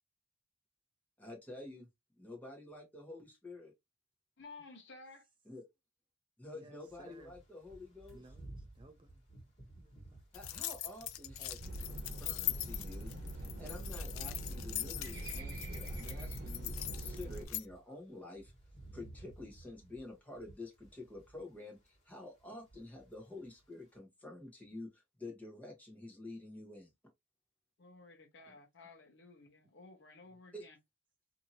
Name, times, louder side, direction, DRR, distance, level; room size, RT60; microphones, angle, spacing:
voice 1, 1.2-1.9 2.2-3.7 5.4-5.6 6.4-8.3 10.3-18.5 18.9-26.9 30.5-30.6, left 2 dB, 10° left, 1.0 m, -49 dB
voice 2, 4.4-5.2 27.8-30.8, left 3 dB, 60° left, 0.8 m, -55 dB
voice 3, 6.5-7.3 8.1-9.2 9.8-10.2 28.5-28.6, right 2 dB, 25° right, 0.3 m, -59 dB
sound 1, 6.8-17.8 18.1-21.5 21.8-22.1 22.4-23.2 23.5-23.7, right 2 dB, 35° left, 1.6 m, -54 dB
sound 2, 10.3-17.7, left 15 dB, 90° left, 0.3 m, -41 dB
sound 3, 11.6-17.5, right 1 dB, 55° right, 1.0 m, -43 dB
2.7 x 2.6 x 2.6 m
head